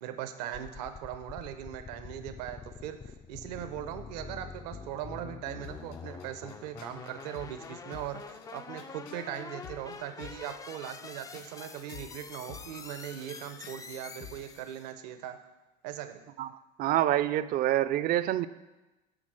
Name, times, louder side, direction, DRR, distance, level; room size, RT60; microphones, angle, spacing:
voice 1, 0.0-15.4 15.8-16.2, right 11 dB, 75° right, 9 dB, 0.8 m, -40 dB
sound 1, 0.5-14.9, left 5 dB, 15° left, 0.4 m, -46 dB
sound 2, 5.6-14.6, left 6 dB, 60° left, 1.7 m, -52 dB
voice 2, 16.8-18.5, right 13 dB, 45° right, 15 dB, 0.5 m, -26 dB
10.0 x 3.7 x 6.3 m, 1.1 s
hypercardioid pair, 95°, 21 cm